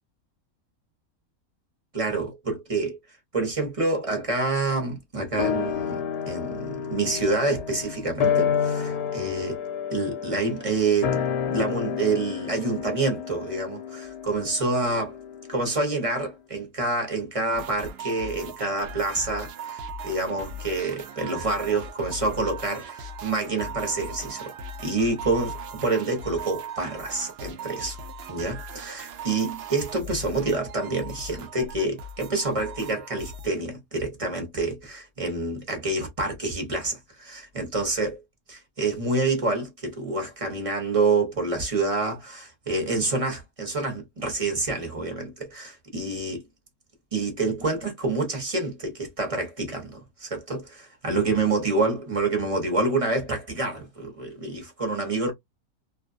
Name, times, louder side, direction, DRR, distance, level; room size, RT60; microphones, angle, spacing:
voice 1, 1.9-3.0 3.3-9.6 9.9-15.2 15.5-24.5 24.8-28.0 28.3-38.2 38.5-46.4 47.1-55.3, right 3 dB, 30° right, 0.8 m, -27 dB
sound 1, 5.4-16.0 16.3-16.4, left 8 dB, 90° left, 1.2 m, -30 dB
sound 2, 17.5-33.5, right 3 dB, 75° right, 0.6 m, -38 dB
2.6 x 2.2 x 2.5 m
omnidirectional pair, 1.6 m